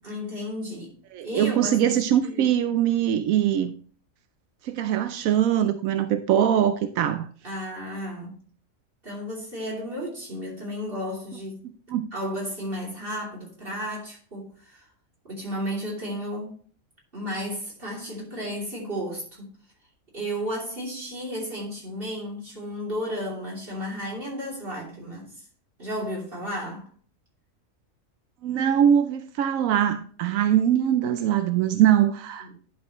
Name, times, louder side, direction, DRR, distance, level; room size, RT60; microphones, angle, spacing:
voice 1, 0.0-0.9 1.2-2.4 7.4-8.4 9.0-11.6 12.1-14.9 15.3-16.6 17.1-19.5 20.1-25.3 25.8-26.9 32.4-32.5, equal, 45° right, 3.2 m, -33 dB
voice 2, 1.1-3.7 4.6-7.3 11.6-12.1 28.4-32.6, right 10 dB, 90° right, 1.0 m, -22 dB
11.0 x 5.9 x 3.0 m
omnidirectional pair, 1.4 m